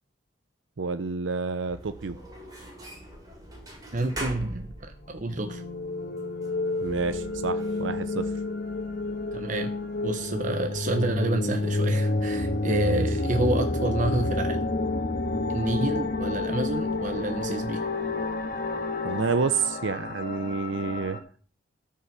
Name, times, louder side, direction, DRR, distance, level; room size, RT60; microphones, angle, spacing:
voice 1, 0.8-2.2 6.8-8.3 12.8-13.1 19.0-21.2, right 5 dB, 85° right, 12 dB, 0.6 m, -29 dB
sound 1, 1.7-13.9, right 1 dB, 20° right, 4.3 m, -45 dB
voice 2, 3.9-5.6 9.3-9.7 10.0-14.7 15.5-17.8, right 2 dB, 45° right, 7 dB, 0.9 m, -29 dB
sound 2, 5.1-21.2, left 2 dB, 50° left, 1.7 m, -29 dB
13.0 x 5.6 x 6.7 m, 0.43 s
head